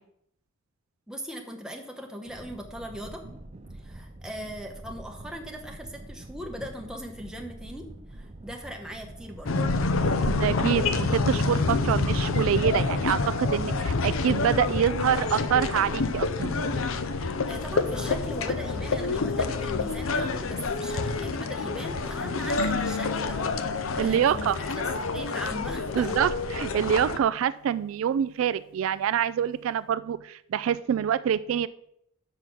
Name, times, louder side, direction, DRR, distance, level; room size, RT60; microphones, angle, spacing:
voice 1, 1.1-3.2 3.7-9.6 17.5-23.5 24.0-24.8 25.1-26.3, equal, 5° right, 2 dB, 1.1 m, -39 dB
sound 1, 2.3-20.4, right 1 dB, 35° right, 0.7 m, -44 dB
sound 2, 9.5-27.2, left 3 dB, 80° left, 0.6 m, -28 dB
voice 2, 10.3-16.5 24.0-24.6 26.0-26.3 26.6-31.7, right 9 dB, 75° right, 16 dB, 0.3 m, -26 dB
sound 3, 22.6-25.2, left 4 dB, 45° left, 1.0 m, -37 dB
6.7 x 5.7 x 6.2 m, 0.74 s
head